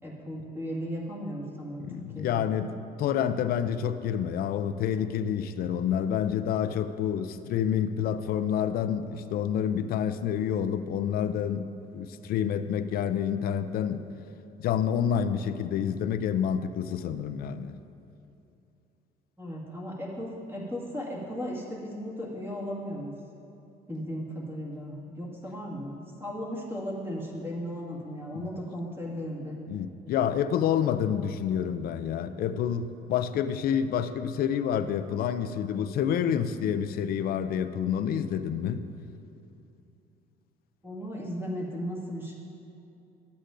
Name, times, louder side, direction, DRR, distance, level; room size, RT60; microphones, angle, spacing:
voice 1, 0.0-2.4 19.4-23.1 23.9-29.6 40.8-42.3, equal, 15° right, -4 dB, 1.9 m, -36 dB
voice 2, 1.8-11.7 11.9-14.1 14.6-17.8 28.3-28.5 29.7-38.8, left 8 dB, 65° left, 11 dB, 0.4 m, -28 dB
13.0 x 8.1 x 2.6 m, 2.7 s
cardioid pair, 110°, 17 cm